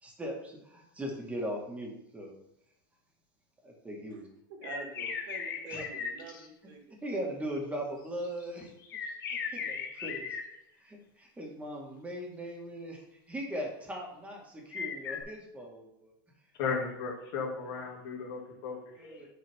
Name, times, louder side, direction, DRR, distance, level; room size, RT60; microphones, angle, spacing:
voice 1, 0.0-2.3 3.6-4.3 5.7-5.9 7.0-8.7 9.5-10.4 10.8-16.1 19.0-19.3, equal, 10° right, 1.9 m, -39 dB
voice 2, 4.5-7.2, right 3 dB, 70° right, 1.8 m, -46 dB
sound 1, 4.6-6.5 8.2-10.5 14.7-15.2, left 6 dB, 90° left, 1.1 m, -37 dB
voice 3, 16.6-19.3, left 5 dB, 60° left, 2.6 m, -35 dB
7.8 x 4.6 x 3.7 m
supercardioid pair, 120°, 11 cm